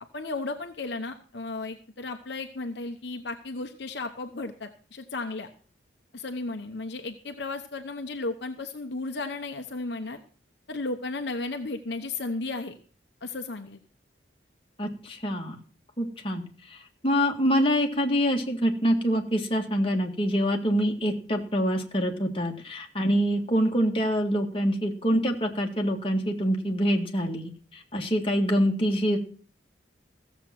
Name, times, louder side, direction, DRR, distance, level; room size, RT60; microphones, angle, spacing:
voice 1, 0.1-5.5 6.1-10.2 10.7-12.8 13.2-13.8, left 3 dB, 60° left, 5 dB, 1.0 m, -34 dB
voice 2, 14.8-15.6 16.0-29.2, equal, 30° left, 1 dB, 1.9 m, -25 dB
15.5 x 7.4 x 5.9 m, 0.41 s
head